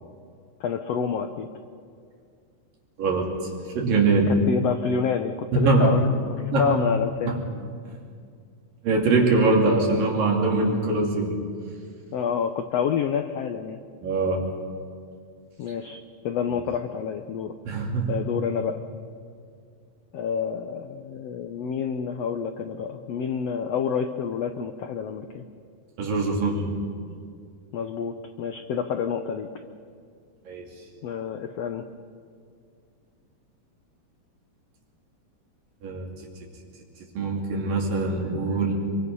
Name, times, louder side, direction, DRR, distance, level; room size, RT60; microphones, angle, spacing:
voice 1, 0.6-1.5 4.3-6.1 6.4-7.3 12.1-13.8 15.6-16.0 16.2-17.5 18.1-18.8 20.1-25.4 27.7-29.5 31.0-31.8, left 7 dB, 85° left, 7 dB, 1.4 m, -28 dB
voice 2, 3.0-4.3 5.5-6.0 6.5-6.7 7.3-7.4 7.9-8.0 8.8-11.3 14.0-14.5 17.6-18.2 26.0-26.7 30.5-30.7 35.8-36.1 37.2-38.7, right 3 dB, 75° right, -1 dB, 4.7 m, -23 dB
27.0 x 23.5 x 5.5 m, 2.2 s
omnidirectional pair, 4.0 m